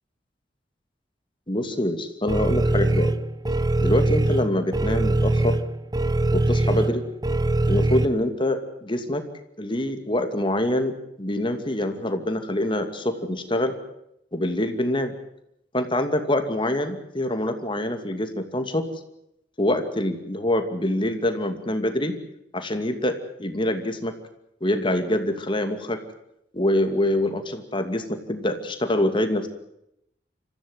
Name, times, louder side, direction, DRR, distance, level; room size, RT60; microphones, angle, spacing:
voice 1, 1.5-3.1 3.8-5.5 6.3-7.0 7.7-9.2 9.6-10.9 11.2-13.7 14.3-15.1 15.7-18.9 19.6-22.1 22.5-24.1 24.6-26.0 26.5-29.5, left 1 dB, 30° left, 7 dB, 2.6 m, -25 dB
sound 1, 2.3-8.0, right 2 dB, 20° right, 0.9 m, -22 dB
26.0 x 15.0 x 9.6 m, 0.79 s
head